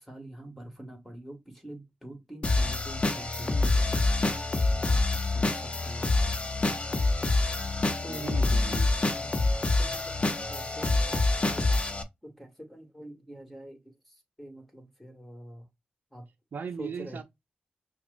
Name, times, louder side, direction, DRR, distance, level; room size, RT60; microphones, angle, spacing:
voice 1, 0.0-4.2 4.8-6.7 8.0-8.4 9.1-11.9 12.2-15.7 16.1-16.3 16.8-17.2, right 1 dB, 5° left, 2.1 m, -46 dB
sound 1, 2.4-12.0, left 2 dB, 35° left, 1.0 m, -26 dB
voice 2, 8.1-8.9 16.5-17.2, right 6 dB, 65° right, 0.7 m, -38 dB
5.8 x 2.4 x 2.6 m
cardioid pair, 55°, 3 cm